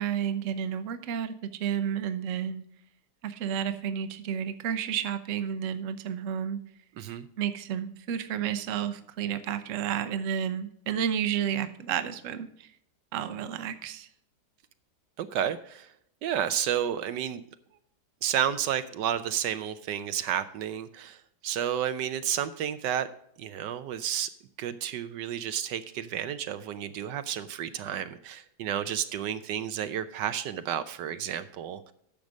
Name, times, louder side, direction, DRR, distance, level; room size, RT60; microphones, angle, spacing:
voice 1, 0.0-2.6 3.2-6.6 7.4-12.7 13.1-14.1, right 9 dB, 55° right, 10 dB, 1.0 m, -31 dB
voice 2, 7.0-7.3 15.2-15.9 16.2-17.4 18.2-23.1 23.4-24.3 24.6-31.9, right 10 dB, 80° right, 11 dB, 1.2 m, -31 dB
10.5 x 6.7 x 5.0 m, 0.71 s
omnidirectional pair, 1.9 m